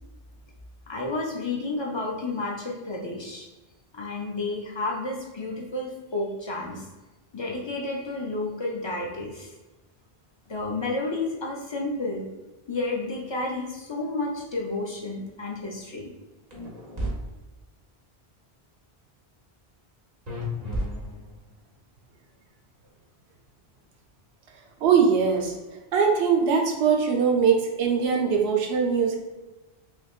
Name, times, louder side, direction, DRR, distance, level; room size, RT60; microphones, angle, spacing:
voice 1, 0.9-3.5 3.9-6.9 7.3-9.5 10.5-12.3 12.7-16.1, left 2 dB, 50° left, -1 dB, 0.3 m, -31 dB
sound 1, 16.5-17.1 20.3-21.4, equal, 45° right, 0.9 m, -32 dB
voice 2, 24.8-25.5 25.9-29.1, right 6 dB, 85° right, 1 dB, 0.9 m, -21 dB
3.3 x 3.1 x 2.4 m, 1.1 s
omnidirectional pair, 1.0 m